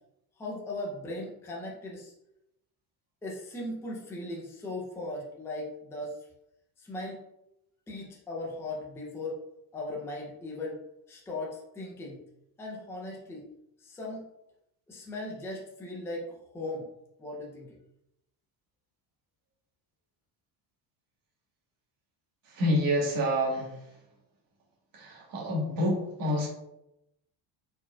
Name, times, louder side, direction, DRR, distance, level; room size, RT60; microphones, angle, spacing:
voice 1, 0.4-2.1 3.2-6.2 6.8-7.2 7.9-9.4 9.7-10.8 11.1-12.2 12.6-13.5 13.8-14.2 14.9-16.9 17.2-17.8, left 2 dB, 5° left, -3 dB, 0.5 m, -38 dB
voice 2, 22.5-23.8 24.9-26.5, equal, 45° right, -2 dB, 1.4 m, -28 dB
4.4 x 4.2 x 2.3 m, 0.84 s
cardioid pair, 165°, 46 cm